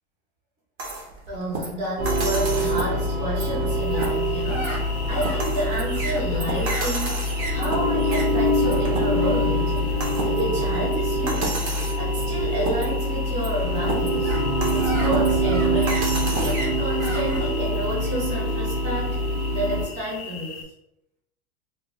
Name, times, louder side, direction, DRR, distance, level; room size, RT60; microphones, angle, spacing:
sound 1, 0.8-17.5, right 2 dB, 50° right, 0.8 m, -32 dB
voice 1, 1.3-9.9 10.2-11.6 12.0-14.4 14.7-16.1 16.4-19.2 19.5-20.6, equal, 25° right, -4 dB, 0.7 m, -30 dB
sound 2, 2.0-19.8, equal, 85° right, 1.4 m, -24 dB
sound 3, 3.7-20.6, left 5 dB, 30° left, 0.4 m, -40 dB
2.6 x 2.1 x 3.1 m, 0.80 s
supercardioid pair, 155°, 32 cm